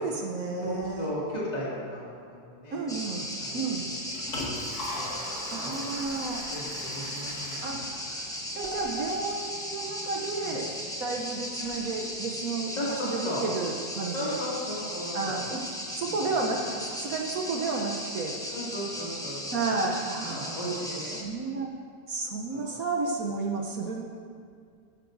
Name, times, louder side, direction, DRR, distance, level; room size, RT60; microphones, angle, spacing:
voice 1, 0.0-1.1 2.7-3.9 5.5-6.5 7.6-7.8 8.5-10.7 11.0-12.7 13.0-14.4 15.1-15.6 15.9-18.4 19.5-20.4 21.2-21.8 22.1-24.0, right 3 dB, 60° right, 1 dB, 1.2 m, -32 dB
voice 2, 0.6-3.1 3.4-4.6 4.9-5.2 5.5-5.8 6.5-8.0 10.4-10.6 12.8-13.4 14.1-15.4 16.1-16.2 18.5-19.7 20.2-21.2 22.5-22.7, equal, 25° left, -7 dB, 2.3 m, -36 dB
sound 1, 2.9-21.2, equal, 5° left, 0.7 m, -37 dB
sound 2, 3.0-11.9, right 2 dB, 85° right, 1.8 m, -47 dB
Liquid, 3.8-8.8, left 1 dB, 60° left, 2.6 m, -40 dB
13.5 x 11.0 x 2.6 m, 2.2 s
omnidirectional pair, 1.8 m